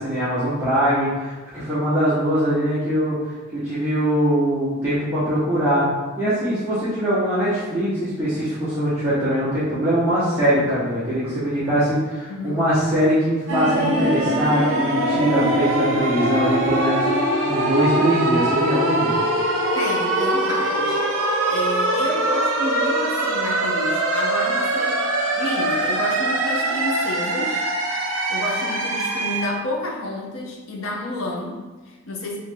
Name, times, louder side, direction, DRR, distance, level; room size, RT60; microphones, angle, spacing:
voice 1, 0.0-3.2 3.5-5.8 6.2-19.1, equal, 10° right, -14 dB, 1.1 m, -22 dB
voice 2, 12.3-12.7 19.7-21.0 21.5-25.0 25.4-27.7 28.3-32.4, left 1 dB, 85° left, -1 dB, 0.7 m, -30 dB
sound 1, 13.5-29.5, right 1 dB, 80° right, 0.8 m, -22 dB
3.9 x 3.2 x 3.5 m, 1.2 s
head